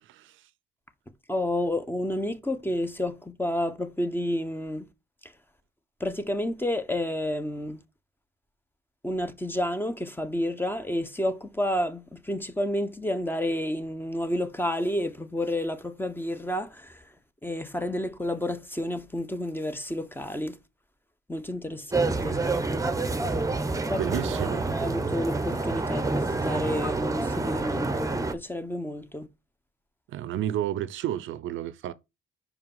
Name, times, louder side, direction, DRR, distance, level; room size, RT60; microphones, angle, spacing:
voice 1, 0.0-0.4 24.0-24.6 30.1-31.9, right 11 dB, 80° right, 0.6 m, -31 dB
voice 2, 1.3-4.9 6.0-7.8 9.0-17.1 17.4-20.6 21.3-22.4 23.9-24.0 24.5-29.3, left 1 dB, 10° left, 1.1 m, -30 dB
sound 1, 21.9-28.3, right 3 dB, 15° right, 0.9 m, -28 dB
5.6 x 4.8 x 5.5 m
cardioid pair, 90°, 20 cm